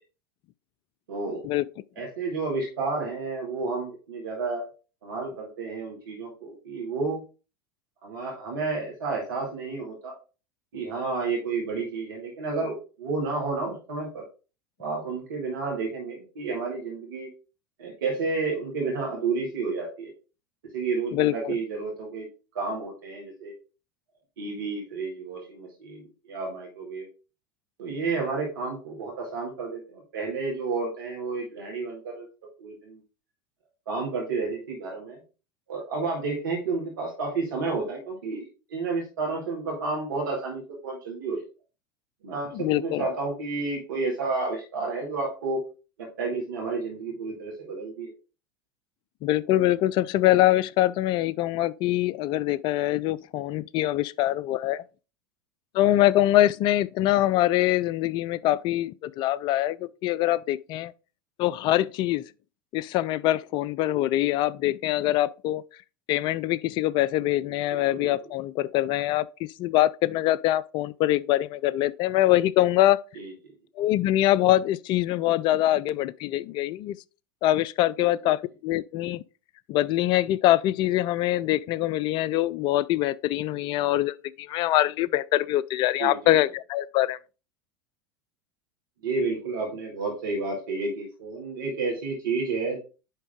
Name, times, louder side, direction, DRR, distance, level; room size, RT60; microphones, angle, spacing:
voice 1, 1.1-1.4 2.0-4.6 5.0-7.2 8.0-10.1 10.7-14.2 14.8-17.3 17.8-20.1 20.7-22.3 22.5-23.5 24.4-26.0 26.3-27.1 27.8-32.3 32.6-33.0 33.9-35.2 35.7-41.4 42.2-45.6 46.2-48.1 55.9-56.0 67.7-68.1 73.2-73.3 78.0-78.1 86.0-86.3 89.0-92.8, right 4 dB, 65° right, 2.2 m, -31 dB
voice 2, 21.1-21.5 42.5-43.0 49.2-54.8 55.7-60.9 61.4-62.2 62.7-65.6 66.1-69.3 69.6-73.0 73.8-77.0 77.4-79.2 79.7-87.2, left 14 dB, 40° left, 0.4 m, -24 dB
9.8 x 3.6 x 3.6 m
figure-of-eight pair, 85°, 12 cm